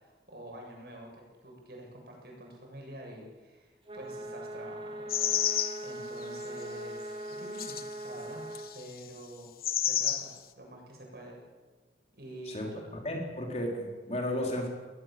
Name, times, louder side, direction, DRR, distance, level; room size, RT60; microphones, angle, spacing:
voice 1, 0.0-8.4 8.7-9.5 9.8-11.4 12.1-12.8, right 1 dB, 60° right, 0 dB, 7.9 m, -47 dB
sound 1, 3.9-8.7, right 1 dB, 30° right, 2.7 m, -40 dB
sound 2, 5.1-5.9 6.4-6.5 7.6-7.9 8.5-8.9 9.6-10.4, left 10 dB, 55° left, 1.2 m, -29 dB
voice 2, 13.0-14.7, left 1 dB, 35° left, 1 dB, 4.0 m, -33 dB
21.0 x 20.0 x 7.7 m, 1.3 s
head